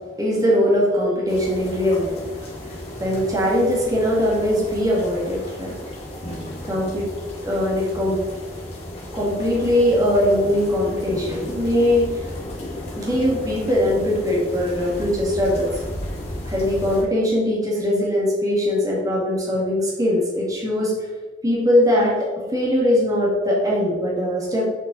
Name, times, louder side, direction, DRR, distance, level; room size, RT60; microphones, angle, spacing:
voice 1, 0.2-2.2 2.7-5.8 6.6-7.1 7.4-8.2 9.1-12.3 13.0-15.7 16.5-20.9 21.4-22.1 22.5-24.7, left 1 dB, 20° right, -4 dB, 2.2 m, -21 dB
sound 1, 1.3-17.0, left 1 dB, 40° left, 2.3 m, -34 dB
7.3 x 6.1 x 4.1 m, 1.2 s
head